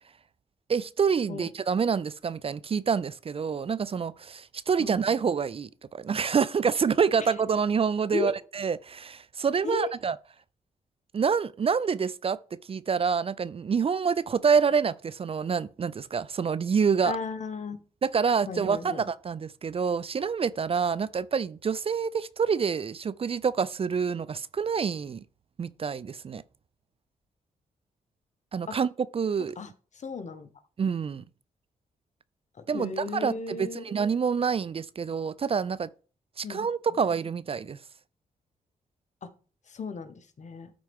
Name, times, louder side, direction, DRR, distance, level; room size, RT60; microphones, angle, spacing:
voice 1, 0.7-10.2 11.1-12.4 12.7-17.1 18.0-25.2 25.6-26.4 28.5-29.6 30.8-31.2 32.7-35.9 36.4-37.8, right 6 dB, 40° right, 0.4 m, -27 dB
voice 2, 17.0-17.8 18.5-19.0 28.7-28.8 29.6-30.5 32.6-33.9 36.4-36.7 37.0-37.1 39.2-39.3 39.7-40.7, left 4 dB, 55° left, 1.3 m, -35 dB
12.5 x 4.4 x 3.6 m
cardioid pair, 60°, 15 cm